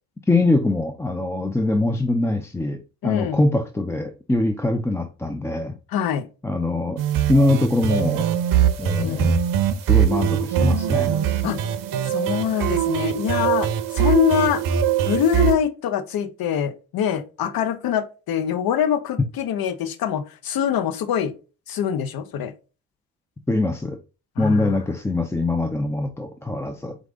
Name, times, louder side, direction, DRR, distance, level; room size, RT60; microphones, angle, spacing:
voice 1, 0.3-5.7 6.4-7.0 7.3-8.3 8.8-9.3 9.9-11.2 23.5-24.0 24.4-27.0, left 2 dB, 5° left, 0.4 m, -23 dB
voice 2, 3.0-3.4 5.9-6.3 9.0-9.3 11.4-11.6 12.1-13.7 13.9-14.6 15.1-21.3 21.7-22.5 24.4-24.7, left 9 dB, 55° left, 0.9 m, -24 dB
sound 1, 7.0-15.6, right 9 dB, 50° right, 0.7 m, -22 dB
4.6 x 2.5 x 3.8 m
hypercardioid pair, 60°, 44 cm